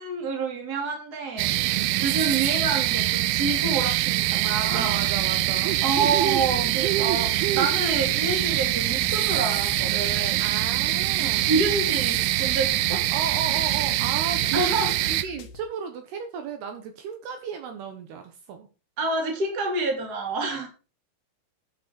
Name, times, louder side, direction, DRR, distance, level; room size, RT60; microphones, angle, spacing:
voice 1, 0.0-1.6 2.0-5.1 5.8-10.4 11.2-13.1 14.5-15.2 19.0-20.7, right 3 dB, 25° right, 3 dB, 2.9 m, -28 dB
sound 1, 1.4-15.2, right 16 dB, 85° right, 2.2 m, -24 dB
voice 2, 1.6-2.2 4.4-5.8 10.2-11.6 13.1-14.8 15.1-18.7 20.6-20.7, right 6 dB, 70° right, 6 dB, 3.1 m, -34 dB
sound 2, 4.9-15.6, left 4 dB, 70° left, 3.3 m, -43 dB
11.0 x 6.9 x 6.0 m, 0.33 s
omnidirectional pair, 5.1 m